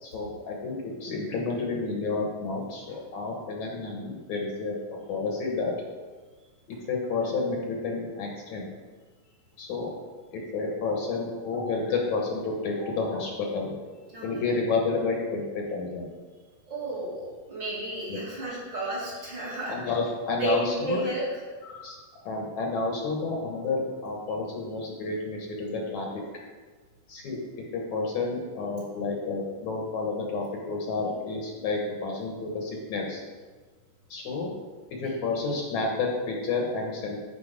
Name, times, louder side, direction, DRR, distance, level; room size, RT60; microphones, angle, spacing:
voice 1, 0.0-5.7 6.9-8.7 9.6-9.9 10.3-13.7 14.2-16.1 18.1-18.2 19.7-21.0 21.6-26.1 27.1-27.4 27.7-33.2 34.1-34.5 35.0-37.2, left 3 dB, 65° left, -1 dB, 2.3 m, -30 dB
voice 2, 16.7-19.8 20.3-21.2, right 2 dB, 35° right, -8 dB, 2.6 m, -32 dB
12.5 x 4.7 x 5.0 m, 1.4 s
omnidirectional pair, 3.9 m